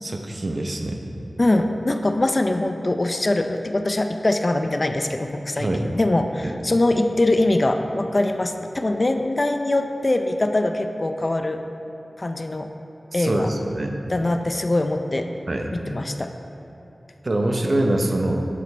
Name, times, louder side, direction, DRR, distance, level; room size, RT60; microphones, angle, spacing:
voice 1, 0.0-1.0 5.6-5.9 13.1-14.0 15.5-15.7 17.2-18.5, right 1 dB, 55° right, 3 dB, 0.7 m, -24 dB
voice 2, 1.4-11.6 12.2-12.7 13.1-13.5 14.1-15.3 15.9-16.3, left 2 dB, 40° left, 6 dB, 0.4 m, -22 dB
9.8 x 5.1 x 4.5 m, 2.9 s
wide cardioid pair, 65°, 0 cm